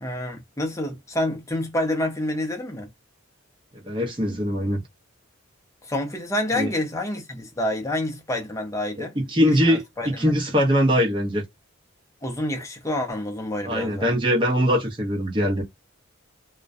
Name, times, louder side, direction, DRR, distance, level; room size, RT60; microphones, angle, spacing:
voice 1, 0.0-2.9 5.8-9.1 9.4-10.3 12.2-14.1, left 1 dB, 15° left, 0.6 m, -28 dB
voice 2, 3.7-4.8 6.5-6.7 9.0-11.4 13.6-15.6, equal, 25° right, 0.7 m, -22 dB
2.3 x 2.1 x 2.5 m
head